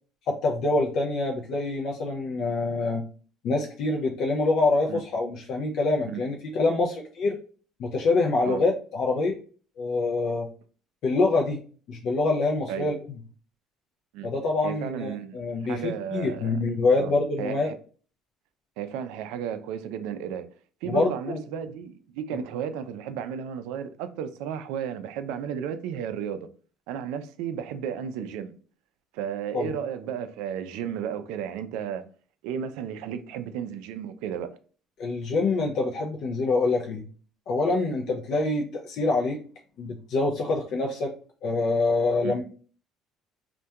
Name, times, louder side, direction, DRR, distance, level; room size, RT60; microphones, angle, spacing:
voice 1, 0.3-3.0 3.4-7.4 7.8-9.3 9.8-10.5 11.0-11.6 11.9-13.0 14.2-17.7 20.9-21.4 22.3-22.4 29.5-29.7 35.0-37.0 37.5-39.4 39.8-41.1 41.4-42.4, left 3 dB, 45° left, 0.3 m, -25 dB
voice 2, 14.6-15.4 15.6-16.6 17.0-17.1 17.4-17.8 18.8-20.5 20.8-26.5 26.9-28.5 29.1-32.0 32.4-34.5 42.2-42.4, right 8 dB, 85° right, 0.3 m, -33 dB
2.7 x 2.1 x 2.3 m
cardioid pair, 180°, 0 cm